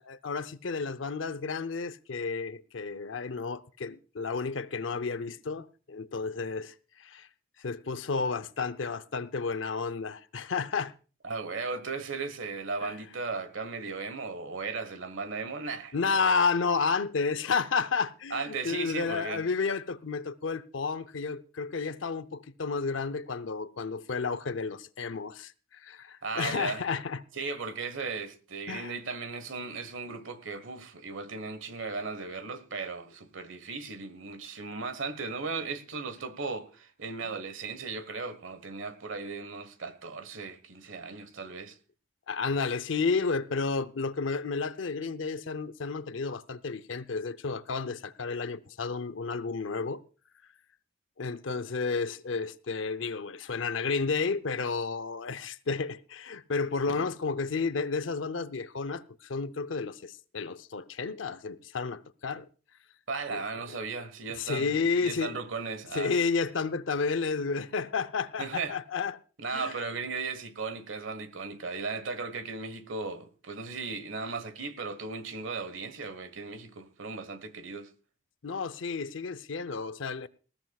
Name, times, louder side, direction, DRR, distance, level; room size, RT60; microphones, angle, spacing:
voice 1, 0.0-6.7 7.0-7.3 7.6-10.9 12.8-12.9 15.9-27.2 28.7-28.9 42.3-50.0 51.2-62.5 63.3-63.4 63.7-63.8 64.4-65.4 65.9-69.2 69.5-69.7 78.4-80.3, left 4 dB, 80° left, 0.7 m, -31 dB
voice 2, 11.2-16.4 18.3-19.4 26.2-26.8 27.3-41.8 63.1-66.1 68.4-68.8 69.4-77.9, right 4 dB, 85° right, 1.4 m, -36 dB
19.5 x 15.0 x 2.4 m
head